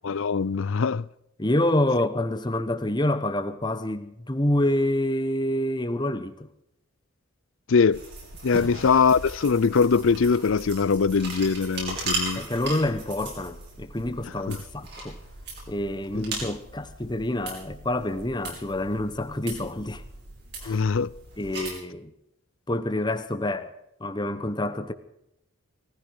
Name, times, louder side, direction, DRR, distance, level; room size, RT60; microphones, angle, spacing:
voice 1, 0.0-1.0 7.7-8.0 8.4-12.4 14.5-14.6 16.1-16.2 20.7-21.1, left 5 dB, 65° left, 0.5 m, -22 dB
voice 2, 1.4-6.5 8.5-8.7 12.3-15.2 15.7-20.0 20.6-20.8 21.4-22.1 22.7-23.7 24.0-24.9, left 1 dB, 20° left, 1.1 m, -27 dB
sound 1, 7.9-21.7, right 2 dB, 50° right, 6.6 m, -38 dB
18.5 x 15.0 x 4.8 m
head